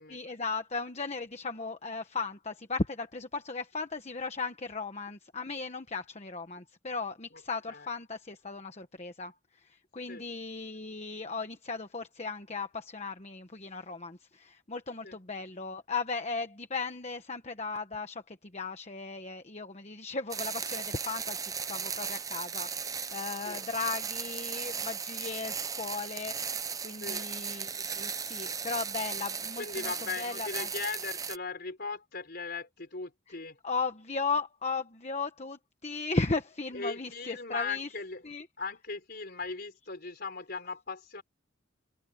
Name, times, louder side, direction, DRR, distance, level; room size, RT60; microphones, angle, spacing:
voice 1, 0.1-26.6 26.8-30.7 33.6-37.9 38.2-38.4, left 4 dB, 35° left, 1.2 m, -36 dB
sound 1, 20.3-31.4, right 6 dB, 15° right, 0.6 m, -36 dB
voice 2, 29.6-33.6 36.7-38.2 38.6-41.2, left 4 dB, 50° left, 4.0 m, -38 dB
head